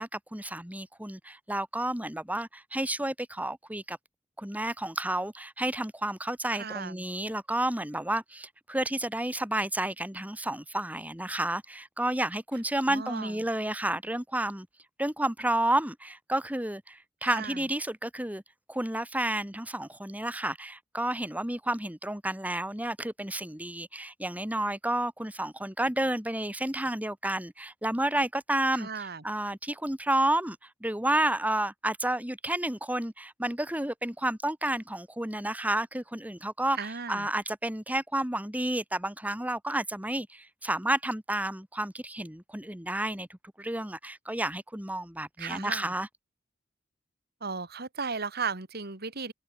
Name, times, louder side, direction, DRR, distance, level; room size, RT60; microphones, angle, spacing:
voice 1, 0.0-4.0 4.4-14.7 15.0-18.4 18.7-36.8 37.1-43.3 43.6-46.1, right 1 dB, 10° right, 2.4 m, -31 dB
voice 2, 6.5-7.0 12.9-13.4 17.2-17.6 28.7-29.2 36.8-37.3 45.4-45.9 47.4-49.3, right 5 dB, 55° right, 2.7 m, -36 dB
head